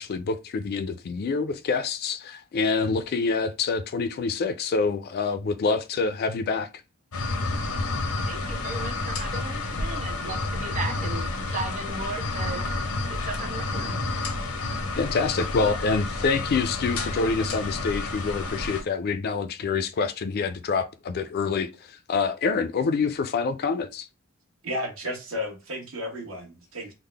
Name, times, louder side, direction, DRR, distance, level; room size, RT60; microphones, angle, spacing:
voice 1, 0.0-6.7 15.0-24.1, left 4 dB, 50° left, 0.3 m, -26 dB
sound 1, 7.1-18.8, left 2 dB, 90° left, 0.7 m, -30 dB
voice 2, 8.2-14.1, right 3 dB, 35° right, 0.7 m, -36 dB
voice 3, 24.6-26.9, left 1 dB, 70° right, 1.1 m, -33 dB
3.6 x 2.1 x 3.3 m
head